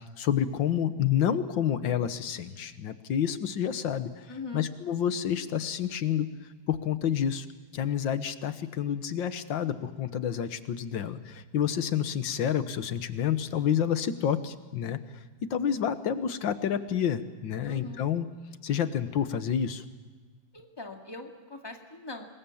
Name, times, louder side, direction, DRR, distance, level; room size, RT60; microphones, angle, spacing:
voice 1, 0.2-4.1 4.5-6.3 6.7-7.5 7.7-15.0 15.5-18.3 18.6-19.8, left 9 dB, 80° left, 11 dB, 1.9 m, -29 dB
voice 2, 4.3-4.7 17.6-18.1 20.5-22.2, left 3 dB, 15° left, 2 dB, 2.2 m, -41 dB
26.5 x 21.5 x 7.2 m, 1.4 s
omnidirectional pair, 2.0 m